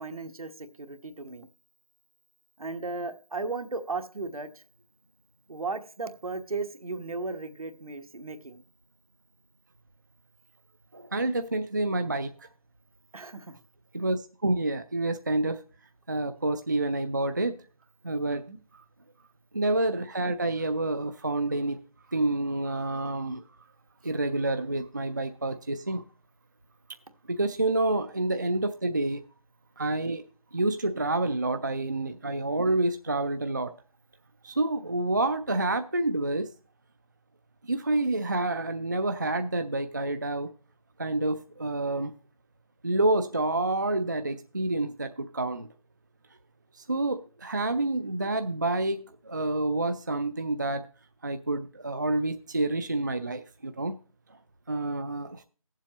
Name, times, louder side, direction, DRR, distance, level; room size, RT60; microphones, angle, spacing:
voice 1, 0.0-1.5 2.6-4.6 5.5-8.6 13.1-13.6 18.3-18.6 28.3-28.4, right 3 dB, 80° right, 7 dB, 1.3 m, -36 dB
voice 2, 10.9-12.5 13.9-15.6 16.1-17.6 18.0-18.4 19.5-21.8 22.1-23.4 24.0-26.1 27.3-29.2 29.8-30.2 30.5-33.7 34.4-36.5 37.7-40.5 41.0-42.1 42.8-45.7 46.8-50.9 51.2-53.9 54.7-55.4, right 2 dB, 35° right, 10 dB, 0.3 m, -28 dB
16.0 x 7.4 x 3.0 m, 0.38 s
figure-of-eight pair, 165°, 18 cm